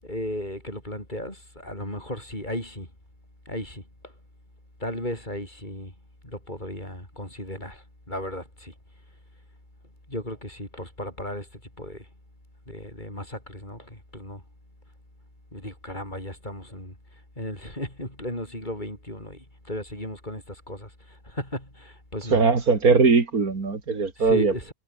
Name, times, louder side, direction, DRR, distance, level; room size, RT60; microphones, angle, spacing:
voice 1, 0.0-2.9 3.5-3.8 4.8-5.9 6.2-8.7 10.1-11.5 11.8-12.1 12.7-14.4 15.5-16.9 17.4-20.9 21.2-22.4 24.2-24.7, left 1 dB, 30° left, 7.9 m, -35 dB
voice 2, 22.3-24.7, right 4 dB, 80° right, 3.1 m, -20 dB
omnidirectional pair, 1.5 m